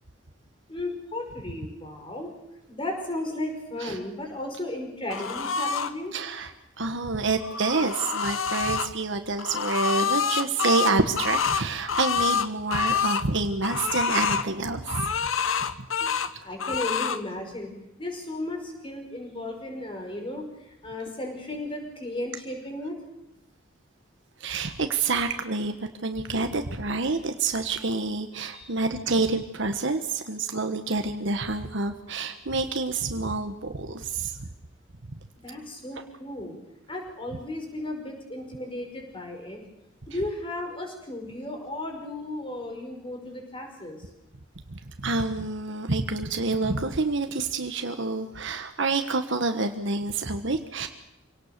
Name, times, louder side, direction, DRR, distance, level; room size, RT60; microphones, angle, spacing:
voice 1, 0.7-2.3 2.7-6.2 16.0-16.1 16.4-17.7 18.0-23.0 28.5-28.8 35.4-36.6 36.9-39.6 40.1-44.1, left 1 dB, 25° left, 3 dB, 5.4 m, -35 dB
sound 1, 5.1-5.9 7.3-8.9 9.4-13.2 13.6-14.5 14.9-16.3 16.6-17.2, left 6 dB, 75° left, 1.1 m, -27 dB
voice 2, 6.1-6.5 6.8-15.1 24.4-25.7 26.0-34.5 44.7-50.9, right 3 dB, 65° right, 6 dB, 1.4 m, -28 dB
26.5 x 18.0 x 6.8 m, 0.94 s
head